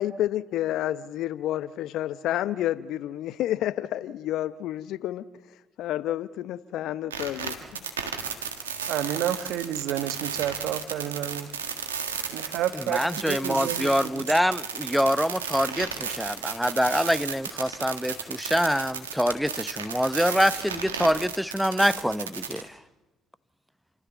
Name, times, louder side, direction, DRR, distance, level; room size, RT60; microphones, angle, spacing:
voice 1, 0.0-5.3 5.8-7.9, left 13 dB, 65° left, 0.7 m, -30 dB
sound 1, 7.1-22.7, right 7 dB, 90° right, 1.7 m, -33 dB
voice 2, 8.9-11.5 12.3-14.2, right 11 dB, 65° right, 1.1 m, -30 dB
voice 3, 12.9-22.7, equal, ahead, 0.9 m, -25 dB
29.0 x 13.5 x 7.3 m
hypercardioid pair, 50°, 0 cm